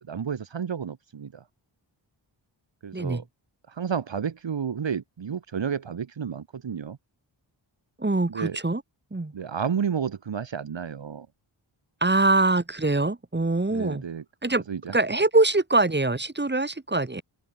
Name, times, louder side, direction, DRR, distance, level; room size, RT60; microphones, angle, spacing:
voice 1, 0.0-1.4 2.8-3.2 3.7-7.0 8.3-8.6 9.3-11.3 13.7-14.2 14.7-15.0, right 7 dB, 65° right, 1.9 m, -31 dB
voice 2, 8.0-8.8 9.1-9.3 12.0-14.0 14.4-14.6 14.9-17.2, right 2 dB, 20° right, 3.9 m, -23 dB
open air
wide cardioid pair, 120°, 47 cm